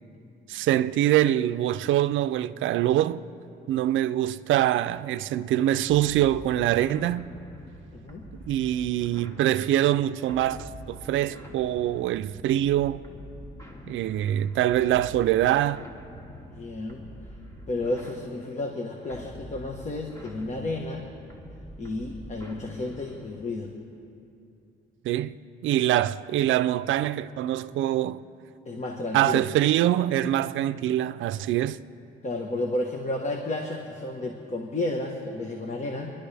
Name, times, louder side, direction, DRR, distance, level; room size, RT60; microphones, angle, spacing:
voice 1, 0.5-3.2 3.7-7.2 8.5-13.0 13.9-15.9 25.0-28.2 29.1-31.8, right 13 dB, 75° right, 0.5 m, -24 dB
sound 1, 5.9-23.5, equal, 15° left, 2.1 m, -45 dB
voice 2, 7.9-8.2 16.5-17.1 17.7-21.1 21.8-23.7 28.6-29.4 32.2-36.1, left 2 dB, 35° left, 1.3 m, -32 dB
27.0 x 11.5 x 3.4 m
cardioid pair, 90°, 20 cm